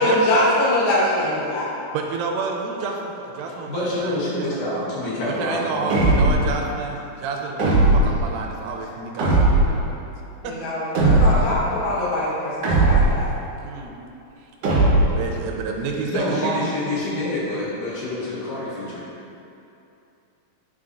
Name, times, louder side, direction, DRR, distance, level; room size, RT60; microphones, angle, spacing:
voice 1, 0.0-1.7 10.4-13.3, left 1 dB, 90° left, -7 dB, 3.2 m, -22 dB
voice 2, 1.9-4.5 5.3-9.5 10.4-10.6 13.6-13.9 15.2-16.7, right 4 dB, 85° right, 1 dB, 2.4 m, -29 dB
voice 3, 3.7-6.2 11.4-11.7 16.1-19.0, left 1 dB, 70° left, -8 dB, 3.0 m, -27 dB
sound 1, 5.9-6.6 7.6-8.2 9.2-9.9 10.9-11.6 12.6-13.3 14.6-15.3, right 2 dB, 65° right, 1.6 m, -17 dB
10.5 x 4.0 x 2.5 m, 2.7 s
omnidirectional pair, 4.2 m